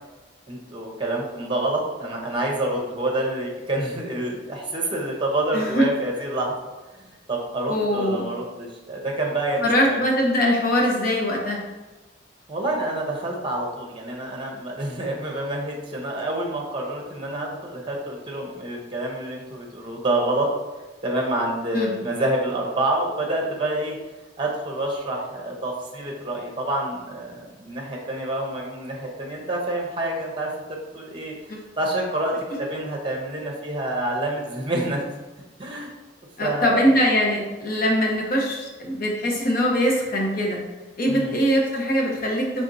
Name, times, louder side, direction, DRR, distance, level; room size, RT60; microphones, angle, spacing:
voice 1, 0.5-6.6 7.3-10.0 12.5-20.5 21.0-24.0 24.4-31.4 31.8-35.1 35.6-35.9 36.4-36.8 41.1-41.4, right 1 dB, 25° right, -1 dB, 0.8 m, -27 dB
voice 2, 5.5-5.9 7.7-8.3 9.6-11.6 21.7-21.9 36.4-40.6 41.0-42.6, equal, 50° left, -1 dB, 0.8 m, -22 dB
4.3 x 3.5 x 2.6 m, 1.2 s
head